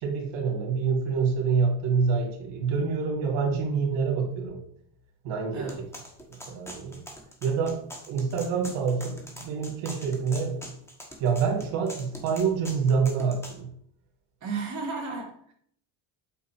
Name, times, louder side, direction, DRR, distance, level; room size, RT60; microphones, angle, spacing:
voice 1, 0.0-4.6 5.2-5.6 6.3-7.0 7.4-10.7 11.2-13.7, right 5 dB, 80° right, 1 dB, 2.4 m, -27 dB
sound 1, 5.7-13.6, equal, 5° left, 1.5 m, -43 dB
voice 2, 14.4-15.5, right 4 dB, 40° right, -3 dB, 3.1 m, -33 dB
8.2 x 5.2 x 3.0 m, 0.63 s
cardioid pair, 115°, 46 cm